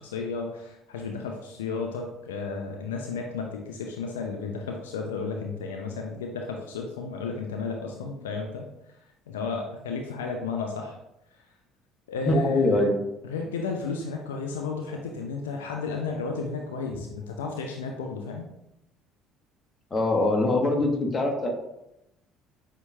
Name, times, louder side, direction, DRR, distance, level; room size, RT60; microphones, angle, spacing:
voice 1, 0.0-8.6 9.3-11.0 11.3-11.4 12.1-12.9 13.2-18.5, left 4 dB, 75° left, 2 dB, 0.4 m, -33 dB
voice 2, 12.3-13.0 19.9-21.5, left 2 dB, 30° left, 2 dB, 1.1 m, -23 dB
6.9 x 2.8 x 2.3 m, 0.85 s
figure-of-eight pair, 55°, 0 cm